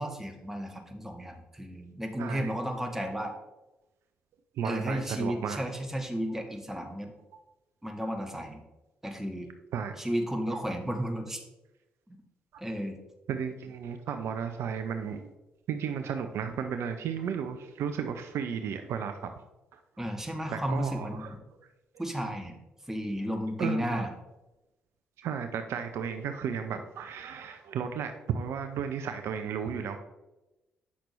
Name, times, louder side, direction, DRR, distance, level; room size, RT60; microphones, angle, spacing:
voice 1, 0.0-3.3 4.6-7.1 7.8-8.6 9.0-9.5 10.0-11.4 12.1-12.2 12.6-13.0 20.0-21.4 22.0-22.6 22.9-24.1, equal, 10° right, 3 dB, 1.3 m, -33 dB
voice 2, 2.2-2.5 4.5-5.6 9.7-10.0 10.5-10.6 12.5-12.6 13.3-15.2 15.7-19.3 19.7-19.8 20.5-21.3 23.6-24.0 25.2-30.0, right 7 dB, 65° right, 7 dB, 0.5 m, -34 dB
8.4 x 5.8 x 3.1 m, 1.0 s
hypercardioid pair, 40°, 5 cm